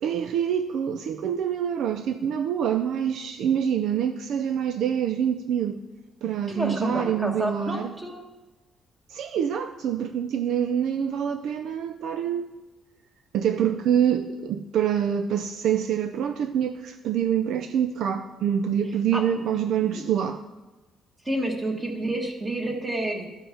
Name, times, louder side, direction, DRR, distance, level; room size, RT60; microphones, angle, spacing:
voice 1, 0.0-5.8 6.2-7.9 9.1-12.5 13.3-20.4, right 9 dB, 65° right, 7 dB, 0.4 m, -26 dB
voice 2, 6.5-8.2 19.1-19.2 19.8-20.0 21.2-23.2, right 1 dB, 15° right, 2 dB, 1.2 m, -29 dB
12.5 x 5.5 x 5.7 m, 1.2 s
cardioid pair, 175°, 0 cm